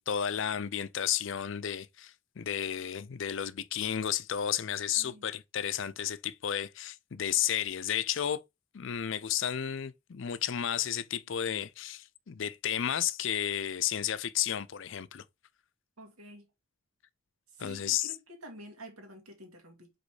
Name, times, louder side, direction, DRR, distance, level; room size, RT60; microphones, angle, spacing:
voice 1, 0.0-8.4 8.7-15.2 17.6-18.1, left 9 dB, 60° left, 0.5 m, -32 dB
voice 2, 16.0-16.5 17.5-19.9, equal, 85° right, 2.1 m, -49 dB
5.1 x 4.2 x 4.8 m
head